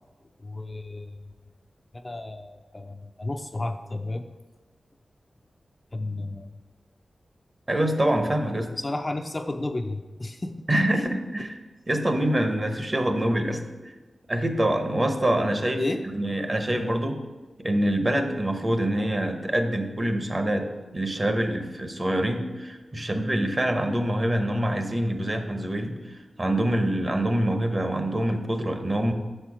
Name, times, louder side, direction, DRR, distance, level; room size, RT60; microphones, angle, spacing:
voice 1, 0.4-1.3 1.9-4.3 5.9-6.6 8.8-10.5 10.9-11.1 11.4-11.5 15.8-16.0 16.6-16.7, left 2 dB, 30° left, 6 dB, 0.4 m, -32 dB
voice 2, 7.7-8.7 10.7-11.5 11.9-13.9 14.3-15.8 16.1-17.2 17.6-20.7 20.9-29.1, right 1 dB, 30° right, 6 dB, 0.8 m, -25 dB
6.4 x 4.4 x 4.8 m, 1.2 s
wide cardioid pair, 85°, 0 cm